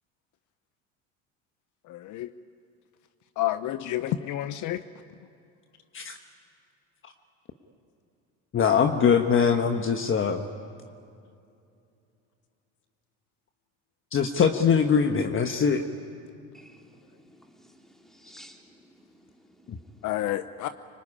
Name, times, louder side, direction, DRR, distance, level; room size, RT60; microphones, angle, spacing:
voice 1, 1.9-2.3 3.4-4.8 20.0-20.7, left 13 dB, 55° left, 11 dB, 0.9 m, -29 dB
voice 2, 8.5-10.4 14.1-15.8, left 6 dB, 35° left, 6 dB, 1.3 m, -22 dB
voice 3, 16.5-18.6 19.0-20.0, equal, ahead, 1 dB, 3.6 m, -54 dB
25.0 x 20.0 x 9.9 m, 2.5 s
supercardioid pair, 95°, 36 cm